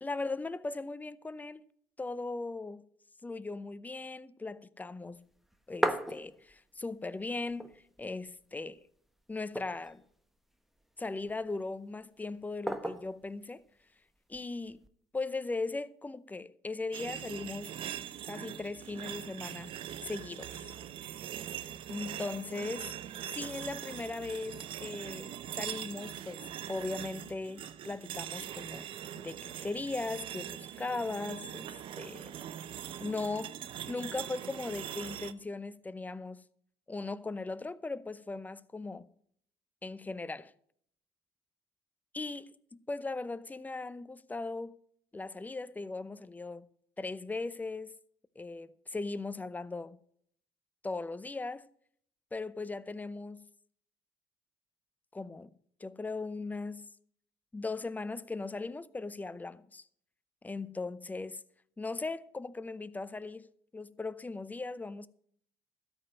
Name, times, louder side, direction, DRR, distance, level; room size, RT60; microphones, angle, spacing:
voice 1, 0.0-1.6 2.0-2.8 3.2-5.2 5.7-8.8 9.3-10.0 11.0-13.6 14.3-14.8 15.1-17.7 18.3-19.7 20.0-20.7 21.9-22.8 23.3-28.9 29.2-32.4 33.0-33.6 33.9-36.4 36.9-39.1 39.8-40.5 42.1-44.8 45.1-46.7 47.0-47.9 48.4-50.0 50.8-51.7 52.3-53.4 55.1-55.5 55.8-56.9 57.5-59.8 60.4-61.4 61.8-63.5 63.7-65.1, left 3 dB, 15° left, 0.7 m, -38 dB
sound 1, 5.3-6.8 7.2-7.3 7.5-8.3 8.7-8.8 9.3-10.1 10.8-11.5 12.7-13.2 14.3-14.9, equal, ahead, 1.1 m, -35 dB
sound 2, 16.9-35.3, right 10 dB, 65° right, 0.8 m, -42 dB
13.0 x 5.3 x 8.7 m
supercardioid pair, 75°, 10 cm